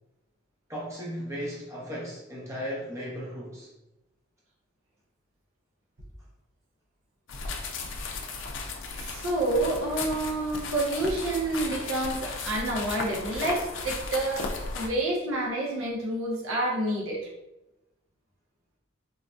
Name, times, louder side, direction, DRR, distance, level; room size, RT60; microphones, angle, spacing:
voice 1, 0.7-3.7, equal, 15° right, -6 dB, 0.7 m, -36 dB
sound 1, 7.3-14.9, left 3 dB, 60° left, 0.4 m, -35 dB
voice 2, 9.0-17.3, right 2 dB, 70° right, -2 dB, 0.8 m, -29 dB
3.9 x 2.6 x 2.3 m, 0.95 s
head